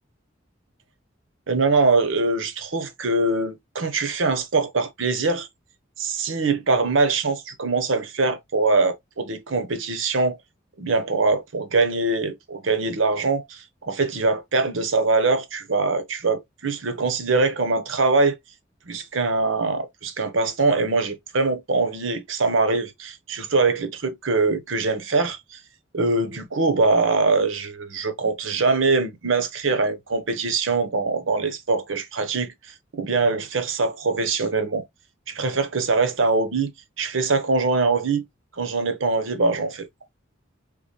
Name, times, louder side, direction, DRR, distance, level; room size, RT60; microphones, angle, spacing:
voice 1, 1.5-5.5 6.0-10.4 10.8-18.4 18.9-25.6 25.9-34.8 35.3-36.7 37.0-38.2 38.6-39.9, right 3 dB, 80° right, 0.9 m, -23 dB
3.9 x 3.5 x 3.0 m
head